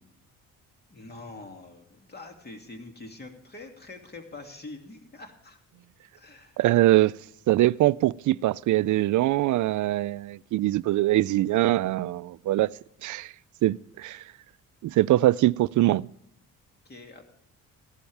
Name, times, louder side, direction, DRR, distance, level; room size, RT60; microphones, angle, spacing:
voice 1, 0.9-5.6 6.1-6.6 16.8-17.2, left 2 dB, 30° left, 2.5 m, -44 dB
voice 2, 6.6-7.1 7.5-12.7 13.0-13.3 13.6-14.2 14.8-16.1, right 15 dB, 60° right, 0.5 m, -23 dB
15.5 x 11.5 x 3.4 m
cardioid pair, 100°, 34 cm